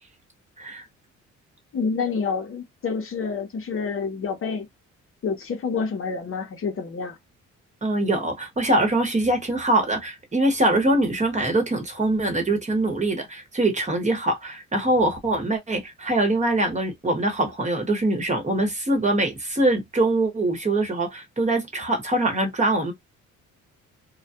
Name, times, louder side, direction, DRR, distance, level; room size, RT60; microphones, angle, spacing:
voice 1, 1.7-4.7 5.2-7.2, left 5 dB, 45° left, 0.7 m, -28 dB
voice 2, 7.8-22.9, right 1 dB, 25° right, 1.1 m, -23 dB
2.3 x 2.1 x 2.7 m
cardioid pair, 90°, 30 cm